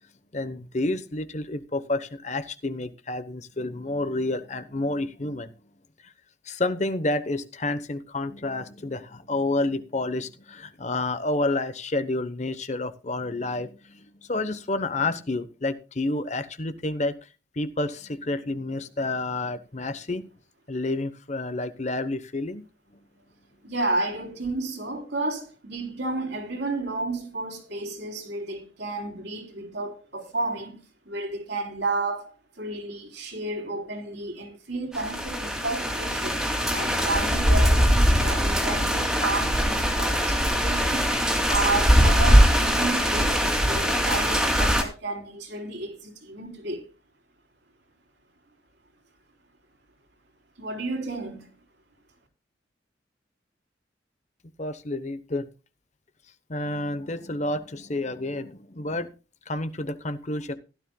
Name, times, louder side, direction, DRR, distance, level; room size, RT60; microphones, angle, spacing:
voice 1, 0.3-5.5 6.0-6.1 6.5-17.1 17.6-20.3 20.7-22.6 54.6-55.5 56.5-59.1 59.5-60.6, left 2 dB, 40° left, 0.9 m, -29 dB
voice 2, 23.6-30.8 31.1-32.3 32.6-36.4 36.7-41.1 41.5-46.9 50.6-51.5, right 2 dB, 65° right, 3.6 m, -32 dB
sound 1, 34.9-44.8, equal, 5° right, 2.5 m, -21 dB
16.0 x 12.5 x 2.3 m
head